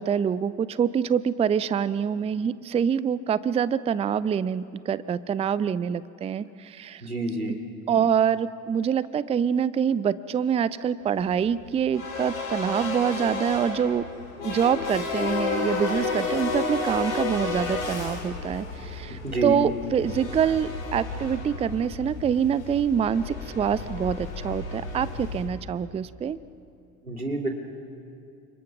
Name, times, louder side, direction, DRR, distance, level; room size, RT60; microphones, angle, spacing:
voice 1, 0.0-7.0 7.9-14.1 14.4-26.4, right 8 dB, 15° right, 18 dB, 0.5 m, -25 dB
voice 2, 7.0-7.6 19.1-19.6 27.0-27.5, right 2 dB, 90° right, 3 dB, 2.4 m, -28 dB
sound 1, 11.1-25.4, left 4 dB, 70° left, 5.8 m, -32 dB
29.5 x 27.0 x 6.0 m, 2.5 s
figure-of-eight pair, 70°, 43 cm